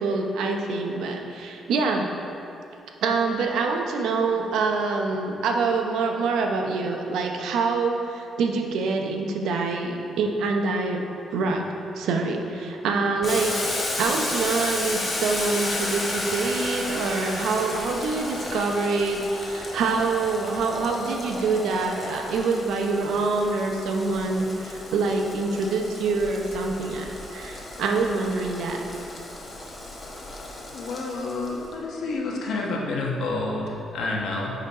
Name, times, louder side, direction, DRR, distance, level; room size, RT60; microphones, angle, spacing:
voice 1, 0.0-2.1 3.0-11.0 11.3-11.6 12.0-28.9, right 4 dB, 80° right, 2 dB, 0.7 m, -25 dB
Boiling, 13.2-31.6, left 2 dB, 35° left, 1.3 m, -33 dB
voice 2, 30.7-34.5, left 3 dB, 75° left, -2 dB, 1.2 m, -29 dB
10.0 x 4.1 x 4.1 m, 2.7 s
cardioid pair, 90°, 0 cm